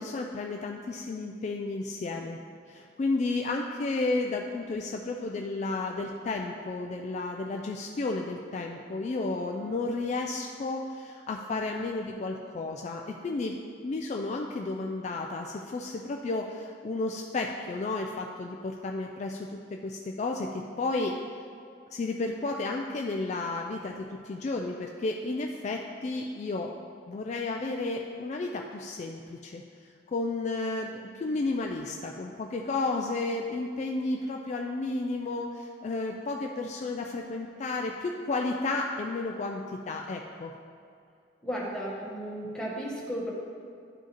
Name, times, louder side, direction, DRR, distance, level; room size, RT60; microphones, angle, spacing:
voice 1, 0.0-2.4 2.7-13.6 13.8-21.2 21.9-26.7 27.1-29.6 30.1-39.6 39.9-40.5, left 3 dB, 40° left, 2 dB, 0.3 m, -32 dB
voice 2, 41.4-43.3, equal, 5° left, -6 dB, 1.3 m, -34 dB
11.5 x 4.6 x 3.0 m, 2.3 s
head